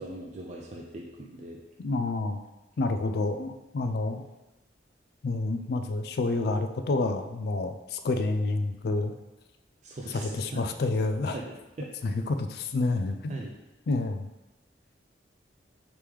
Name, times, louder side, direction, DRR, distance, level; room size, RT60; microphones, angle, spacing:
voice 1, 0.0-1.6 9.8-10.6 11.3-11.9 13.3-13.5, right 1 dB, 40° right, -2 dB, 0.4 m, -40 dB
voice 2, 1.8-2.4 2.8-4.2 5.2-9.1 10.2-11.3 12.0-13.3 13.9-14.3, left 2 dB, 60° left, 8 dB, 0.3 m, -28 dB
3.5 x 3.0 x 4.8 m, 1.0 s
head